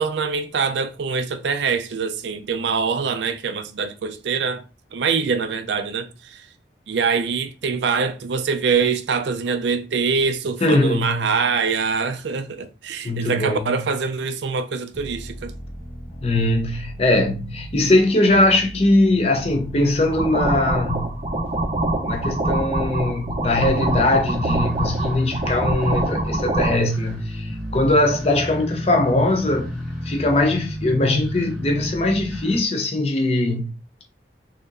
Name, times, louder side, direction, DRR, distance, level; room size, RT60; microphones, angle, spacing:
voice 1, 0.0-4.6 4.9-6.5 6.9-15.5, right 5 dB, 85° right, 0.5 m, -24 dB
voice 2, 10.6-11.3 13.0-13.8 16.2-21.1 22.0-29.7 30.0-33.7, left 2 dB, 35° left, 0.6 m, -21 dB
sound 1, 14.9-32.6, equal, 5° left, 1.4 m, -33 dB
sound 2, 20.1-26.8, right 2 dB, 35° right, 0.5 m, -24 dB
4.1 x 2.9 x 2.5 m
head